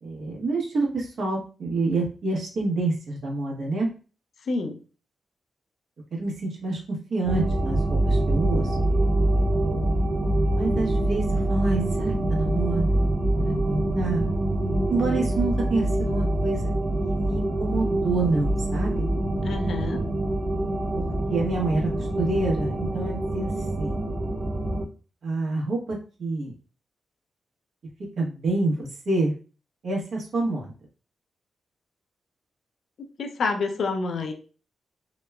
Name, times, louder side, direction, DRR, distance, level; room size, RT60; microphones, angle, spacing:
voice 1, 0.0-3.9 6.1-6.8 7.1-8.7 10.5-13.1 13.4-14.3 14.9-16.6 17.0-19.1 20.9-21.0 21.3-21.9 22.2-23.5 23.8-24.0 25.2-26.5 28.2-29.3 29.8-30.7, right 2 dB, 70° right, -1 dB, 1.0 m, -27 dB
voice 2, 4.5-4.8 19.4-20.0 33.2-34.3, left 3 dB, 70° left, 4 dB, 0.4 m, -28 dB
sound 1, 7.2-24.8, right 1 dB, 50° right, 0.5 m, -25 dB
2.9 x 2.1 x 2.2 m, 0.35 s
cardioid pair, 65°, 0 cm